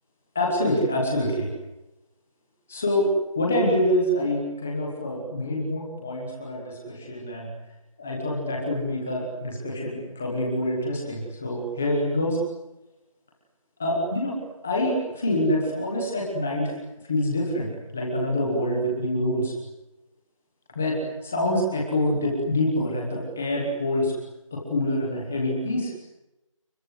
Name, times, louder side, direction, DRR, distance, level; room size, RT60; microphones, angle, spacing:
voice 1, 0.3-1.5 2.7-7.5 8.0-12.4 13.8-14.4 14.6-16.7 17.1-19.5 20.7-24.1 24.5-25.9, left 1 dB, 5° left, 0 dB, 1.1 m, -26 dB
29.0 x 23.5 x 7.8 m, 0.94 s
figure-of-eight pair, 175°, 17 cm